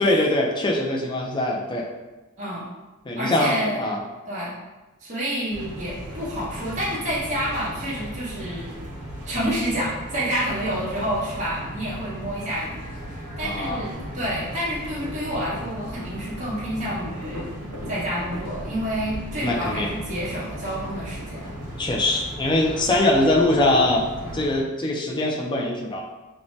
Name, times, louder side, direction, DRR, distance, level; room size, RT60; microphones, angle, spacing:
voice 1, 0.0-1.9 3.1-4.0 13.4-13.8 19.4-19.9 21.8-26.0, left 1 dB, 20° left, -1 dB, 0.4 m, -22 dB
voice 2, 2.4-2.7 3.1-3.8 4.3-4.6 5.0-8.7 9.2-17.4 17.9-21.6, equal, 35° right, -9 dB, 0.9 m, -29 dB
sound 1, 5.5-24.6, right 1 dB, 90° right, 0.9 m, -36 dB
2.6 x 2.1 x 3.1 m, 1.2 s
head